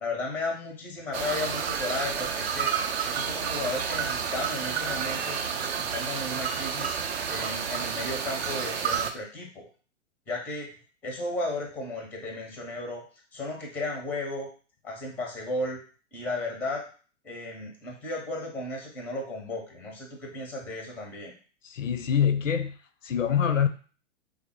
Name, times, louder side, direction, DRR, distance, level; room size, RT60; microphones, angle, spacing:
voice 1, 0.0-5.4 5.8-7.0 7.3-9.7 10.3-10.7 11.0-13.0 13.3-14.5 14.8-15.8 16.1-16.8 17.2-21.3, left 2 dB, 5° left, 0.5 m, -34 dB
sound 1, 1.1-9.1, right 7 dB, 60° right, 0.5 m, -30 dB
voice 2, 21.6-22.8 23.0-23.7, left 8 dB, 85° left, 0.5 m, -25 dB
3.4 x 2.0 x 3.5 m
figure-of-eight pair, 110°, 37 cm